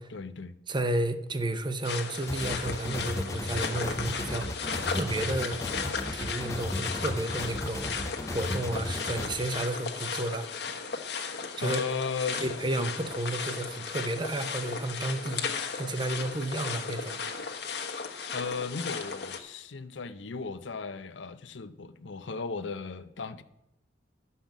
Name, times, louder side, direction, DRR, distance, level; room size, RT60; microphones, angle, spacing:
voice 1, 0.1-0.5 11.6-12.5 12.7-12.9 18.3-23.4, left 4 dB, 90° left, 0.7 m, -36 dB
voice 2, 0.7-5.7 6.1-10.5 11.6-11.8 12.4-15.4 15.7-17.2, right 1 dB, 25° right, 0.7 m, -32 dB
sound 1, 1.8-19.4, left 5 dB, 65° left, 1.2 m, -35 dB
sound 2, 2.3-9.3, left 1 dB, 15° left, 0.7 m, -35 dB
12.0 x 5.7 x 7.2 m
head